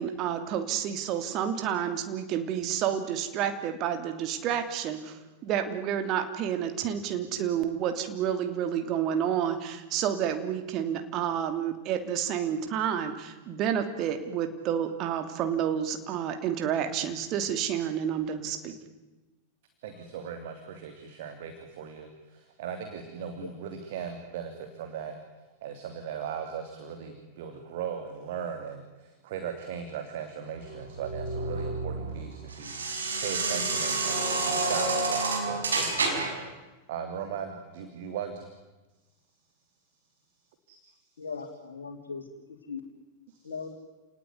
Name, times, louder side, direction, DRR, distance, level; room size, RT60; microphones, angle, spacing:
voice 1, 0.0-18.8, right 9 dB, 35° right, 7 dB, 3.0 m, -30 dB
voice 2, 19.8-25.1 25.6-32.7 33.2-36.4 36.9-38.5 40.7-40.8, right 7 dB, 55° right, 5 dB, 3.1 m, -38 dB
sound 1, 30.6-36.5, right 3 dB, 70° right, 5.2 m, -29 dB
voice 3, 41.2-42.8 43.4-43.7, left 5 dB, 65° left, -2 dB, 3.4 m, -39 dB
29.5 x 19.0 x 9.7 m, 1.1 s
figure-of-eight pair, 90°, 0 cm